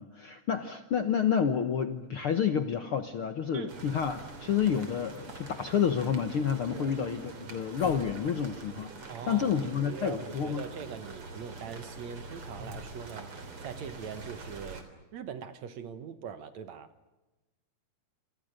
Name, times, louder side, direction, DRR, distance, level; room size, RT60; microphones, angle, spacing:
voice 1, 0.0-10.6, left 7 dB, 60° left, 1.4 m, -29 dB
sound 1, 0.9-8.6, left 2 dB, 40° left, 7.1 m, -52 dB
sound 2, 3.7-14.8, right 3 dB, 40° right, 4.1 m, -45 dB
voice 2, 9.1-14.9 15.1-16.9, right 7 dB, 60° right, 2.2 m, -42 dB
27.5 x 27.5 x 6.6 m
omnidirectional pair, 4.0 m